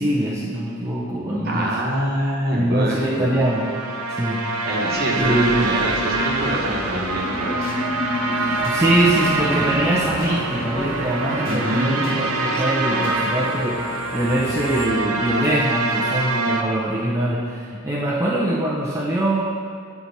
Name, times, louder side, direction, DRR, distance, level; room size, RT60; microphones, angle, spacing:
voice 1, 0.0-1.8 2.5-3.7 4.1-4.5 5.2-5.6 8.6-19.4, right 1 dB, 15° right, -6 dB, 0.6 m, -23 dB
voice 2, 1.4-3.3 4.6-7.7 11.4-12.0, right 1 dB, 45° right, -2 dB, 1.2 m, -25 dB
sound 1, 3.1-16.6, right 2 dB, 75° right, 0.7 m, -25 dB
sound 2, 5.7-16.0, left 2 dB, 40° left, 0.6 m, -33 dB
10.0 x 4.7 x 4.1 m, 2.4 s
head